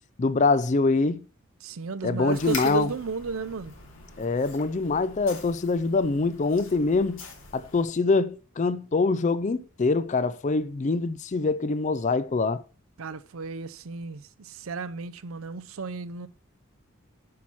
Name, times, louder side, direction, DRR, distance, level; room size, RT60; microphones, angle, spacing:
voice 1, 0.2-1.2 2.0-2.9 4.2-7.2 7.5-12.6, left 3 dB, 35° left, 0.4 m, -24 dB
voice 2, 1.6-3.8 13.0-16.3, right 4 dB, 90° right, 0.6 m, -33 dB
sound 1, 2.3-7.9, left 4 dB, 70° left, 2.8 m, -43 dB
8.5 x 6.1 x 4.1 m
head